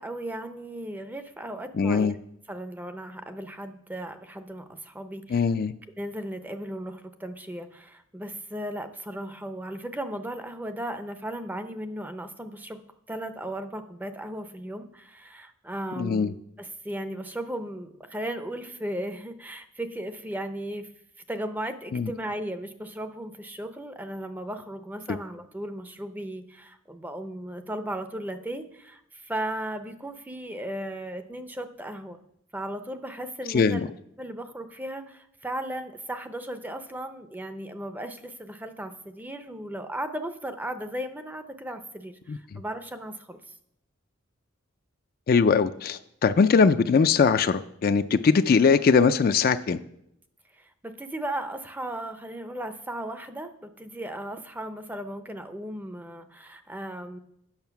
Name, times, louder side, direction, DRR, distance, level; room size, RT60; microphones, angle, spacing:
voice 1, 0.0-2.1 2.5-5.5 6.0-12.8 13.1-20.9 21.3-32.2 32.5-33.8 34.2-43.4 50.5-57.2, right 1 dB, 10° right, 8 dB, 0.5 m, -36 dB
voice 2, 1.8-2.1 5.3-5.7 16.0-16.3 21.9-22.1 33.5-33.8 42.3-42.4 45.3-49.8, left 5 dB, 45° left, 10 dB, 0.4 m, -21 dB
8.9 x 6.4 x 5.8 m, 0.76 s
head